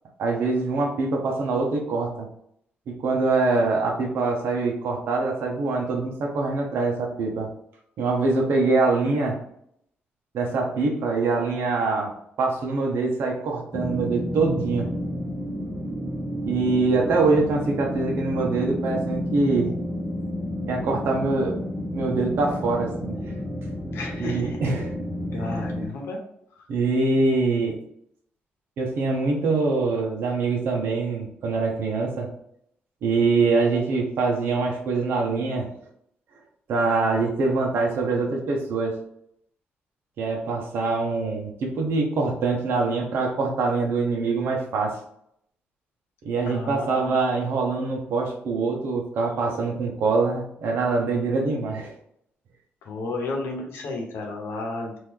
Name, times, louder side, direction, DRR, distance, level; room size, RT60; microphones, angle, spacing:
voice 1, 0.2-2.3 3.0-7.5 8.0-9.4 10.3-12.1 12.4-14.9 16.5-19.7 20.7-21.6 21.9-23.3 24.2-24.9 25.3-25.4 26.7-27.8 28.8-32.3 33.0-35.7 36.7-38.9 40.2-45.0 46.2-51.9, right 3 dB, 65° right, 0 dB, 0.8 m, -24 dB
sound 1, 13.7-25.9, equal, 15° left, 0.7 m, -31 dB
voice 2, 23.9-24.6 25.3-26.2 26.6-26.7 46.5-47.1 52.8-55.0, left 3 dB, 80° left, 1 dB, 1.0 m, -32 dB
3.0 x 2.6 x 3.6 m, 0.70 s
cardioid pair, 160°, 4 cm